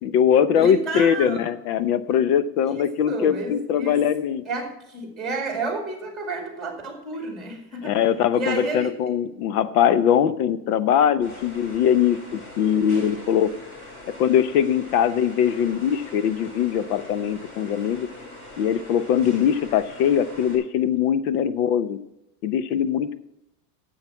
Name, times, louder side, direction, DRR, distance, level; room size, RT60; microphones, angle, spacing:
voice 1, 0.0-4.4 7.8-13.5 14.2-18.1 18.6-22.0 22.4-23.1, left 9 dB, 65° left, 13 dB, 0.9 m, -21 dB
voice 2, 0.6-1.4 2.6-4.0 4.4-8.0 8.3-8.9, right 3 dB, ahead, 1 dB, 2.2 m, -31 dB
sound 1, 11.2-20.6, left 1 dB, 25° left, 3.6 m, -42 dB
10.5 x 7.6 x 5.8 m, 0.86 s
supercardioid pair, 165°, 49 cm